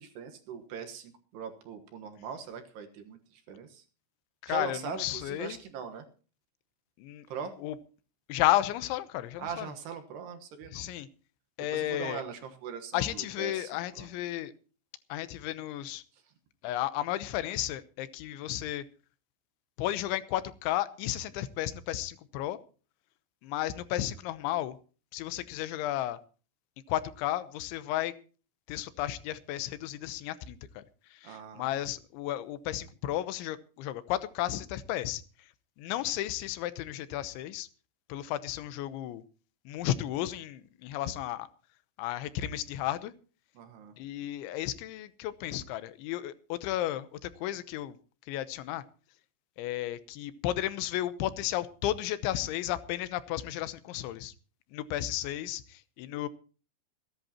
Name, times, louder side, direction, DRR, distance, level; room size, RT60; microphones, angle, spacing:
voice 1, 0.0-3.8 4.5-6.0 7.3-7.5 9.4-10.8 11.7-14.1 16.1-16.2 31.2-31.7 43.6-43.9, right 7 dB, 70° right, 6 dB, 3.2 m, -41 dB
voice 2, 4.4-5.6 7.0-7.3 7.6-7.7 8.3-9.7 10.7-11.1 11.6-12.2 12.9-14.5 15.1-16.0 16.6-18.8 19.8-22.6 23.4-24.8 25.1-26.2 26.9-28.1 28.7-30.8 31.2-35.2 35.8-37.7 38.1-39.2 39.7-41.5 42.0-43.1 44.0-48.0 48.3-48.8 49.6-54.3 54.7-56.3, left 13 dB, 85° left, 13 dB, 3.3 m, -33 dB
27.0 x 10.5 x 2.9 m, 0.37 s
omnidirectional pair, 5.2 m